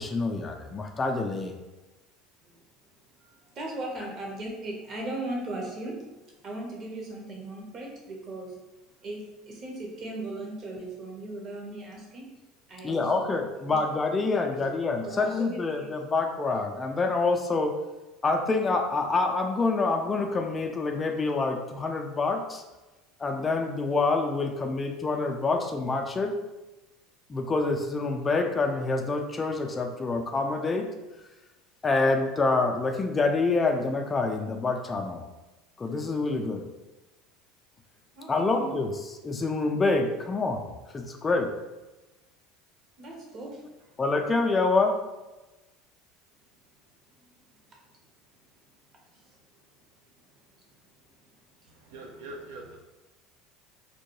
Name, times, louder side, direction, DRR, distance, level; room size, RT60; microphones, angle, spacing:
voice 1, 0.0-1.5 12.8-17.8 18.2-22.6 23.2-26.3 27.3-30.9 31.8-35.3 35.8-36.6 38.3-39.0 39.2-40.7 40.9-41.5 44.0-45.0, left 3 dB, 25° left, 3 dB, 0.3 m, -26 dB
voice 2, 3.2-6.1 6.3-8.5 9.0-12.3 12.7-13.3 13.7-13.8 14.6-14.7 15.0-15.9 38.2-38.8 43.0-43.6 47.7-47.8 49.1-49.3 51.6-51.7, right 2 dB, 45° right, -1 dB, 0.8 m, -38 dB
voice 3, 51.9-52.8, right 2 dB, 75° right, 0 dB, 0.3 m, -42 dB
2.2 x 2.1 x 2.9 m, 1.1 s
hypercardioid pair, 75°, 0 cm